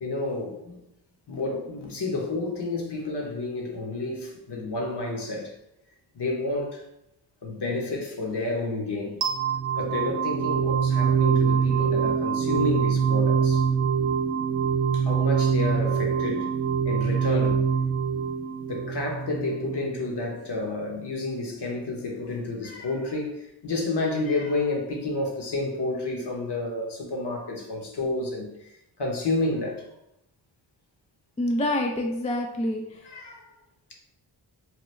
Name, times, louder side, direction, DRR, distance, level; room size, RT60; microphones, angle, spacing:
voice 1, 0.0-0.8 1.3-5.5 6.1-6.8 7.4-9.2 9.8-13.6 14.9-16.5 16.8-17.7 18.7-29.8 33.0-33.5, left 2 dB, 55° left, 0 dB, 1.0 m, -30 dB
sound 1, 9.2-20.1, right 6 dB, 60° right, 0.5 m, -24 dB
voice 2, 31.4-33.0, left 1 dB, 15° left, 2 dB, 0.3 m, -27 dB
3.0 x 2.2 x 3.2 m, 0.81 s
cardioid pair, 45°, 50 cm